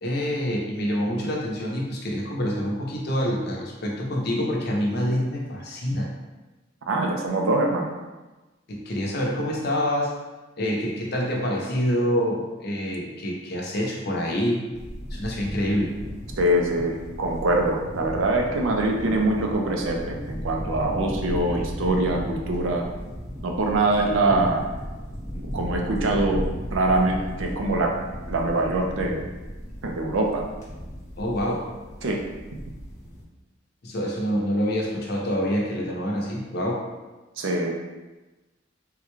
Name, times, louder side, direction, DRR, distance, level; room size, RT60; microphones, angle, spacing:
voice 1, 0.0-6.1 8.7-10.1 10.6-14.7 15.1-16.0 31.2-31.7 33.8-36.9, equal, 55° left, -2 dB, 0.6 m, -26 dB
voice 2, 6.9-7.9 16.4-22.8 23.4-24.6 25.3-26.4 26.7-27.9 28.3-29.2 29.8-30.4 32.0-32.2 37.4-37.7, right 2 dB, 75° right, 1 dB, 0.5 m, -23 dB
sound 1, 14.7-33.2, equal, 15° left, 1.0 m, -35 dB
3.6 x 2.2 x 3.0 m, 1.1 s
head